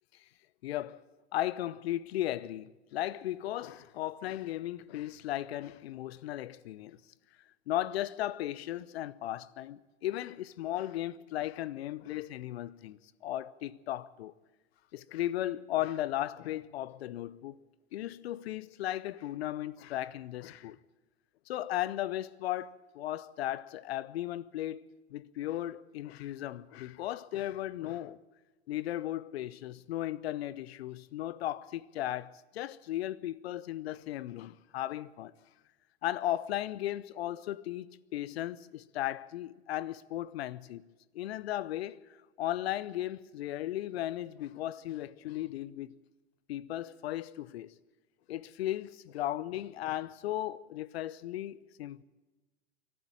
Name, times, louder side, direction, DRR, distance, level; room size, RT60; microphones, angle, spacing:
voice 1, 0.6-1.0 1.3-7.0 7.7-14.3 14.9-17.6 17.9-20.8 21.5-28.2 28.7-35.3 36.0-40.9 41.1-42.0 42.4-45.9 46.5-47.7 48.3-52.0, left 13 dB, 55° left, 0.9 m, -36 dB
24.0 x 12.5 x 8.8 m
figure-of-eight pair, 95°, 37 cm